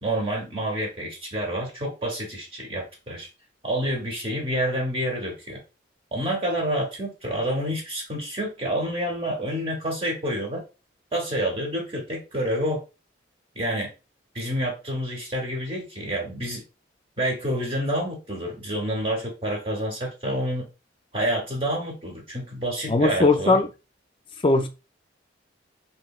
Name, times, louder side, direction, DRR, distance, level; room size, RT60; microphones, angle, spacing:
voice 1, 0.0-3.3 3.6-5.6 6.1-10.6 11.1-12.8 13.5-13.9 14.3-16.6 17.2-20.7 21.1-23.6, right 1 dB, 30° right, 0.8 m, -28 dB
voice 2, 22.9-23.7 24.4-24.7, left 3 dB, 25° left, 0.3 m, -19 dB
2.9 x 2.8 x 2.3 m
head